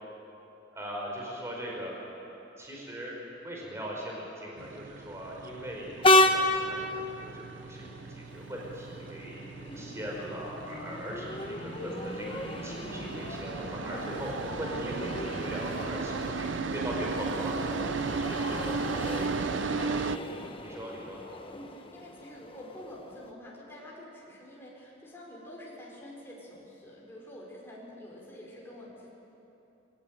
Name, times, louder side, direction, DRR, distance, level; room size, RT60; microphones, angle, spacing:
voice 1, 0.7-1.9 2.6-14.3 14.6-18.0 19.1-19.3 20.2-21.2, equal, 15° right, -3 dB, 4.9 m, -40 dB
sound 1, 4.6-20.2, right 4 dB, 85° right, 0.6 m, -36 dB
Train, 6.0-23.3, left 1 dB, 30° left, 1.1 m, -32 dB
voice 2, 18.2-19.5 21.5-29.1, left 1 dB, 15° left, -4 dB, 5.0 m, -47 dB
21.5 x 18.0 x 9.1 m, 2.9 s
head